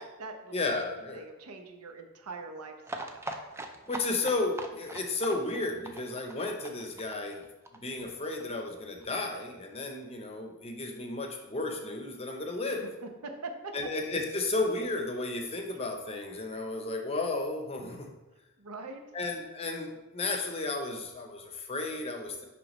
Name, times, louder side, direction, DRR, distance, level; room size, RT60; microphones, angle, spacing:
voice 1, 0.0-0.8 1.1-3.2 12.7-13.7 18.6-19.0, right 3 dB, 90° right, 5 dB, 0.8 m, -43 dB
voice 2, 0.5-1.2 3.9-7.4 7.8-12.8 13.7-18.1 19.1-22.4, left 2 dB, 25° left, 3 dB, 0.7 m, -33 dB
sound 1, 2.8-8.4 8.7-8.8 9.0-9.1 9.3-9.4, right 2 dB, 10° right, 0.3 m, -41 dB
10.0 x 3.4 x 3.1 m, 1.1 s
head